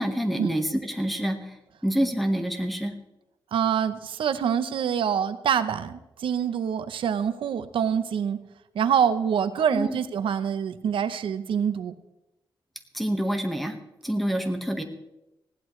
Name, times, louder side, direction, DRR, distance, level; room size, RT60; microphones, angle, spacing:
voice 1, 0.0-1.4 1.8-2.9 9.7-10.0 12.9-13.8 14.0-14.8, equal, ahead, 5 dB, 1.4 m, -26 dB
voice 2, 3.5-8.4 8.7-11.9, right 8 dB, 90° right, 11 dB, 0.8 m, -25 dB
19.5 x 16.0 x 3.2 m, 0.93 s
wide cardioid pair, 150°, 9 cm